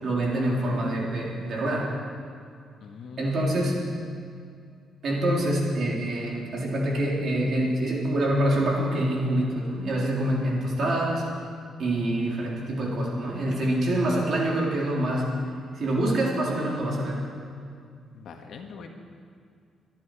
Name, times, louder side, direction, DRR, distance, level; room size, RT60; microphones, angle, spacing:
voice 1, 0.0-1.9 3.2-3.9 5.0-11.3 11.8-15.4 15.7-17.2, right 1 dB, 55° right, -3 dB, 3.9 m, -26 dB
voice 2, 2.8-3.7 18.1-18.9, left 5 dB, 65° left, 3 dB, 1.6 m, -43 dB
23.0 x 11.0 x 4.9 m, 2.3 s
cardioid pair, 135°, 0 cm